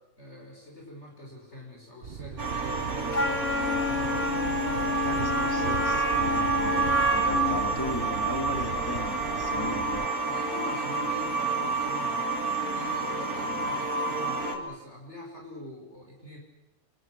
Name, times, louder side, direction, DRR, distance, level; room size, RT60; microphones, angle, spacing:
voice 1, 0.2-3.7 9.4-9.8 10.2-16.4, equal, 50° left, -1 dB, 6.3 m, -45 dB
Thunder, 2.0-10.1, right 7 dB, 45° right, 1.1 m, -38 dB
sound 1, 2.4-14.6, right 4 dB, 90° right, 4.1 m, -29 dB
Wind instrument woodwind instrument, 3.1-7.6, left 3 dB, 70° left, 3.3 m, -28 dB
voice 2, 4.9-10.0, left 2 dB, 15° left, 5 dB, 3.1 m, -37 dB
27.5 x 24.0 x 6.3 m, 1.0 s
omnidirectional pair, 1.5 m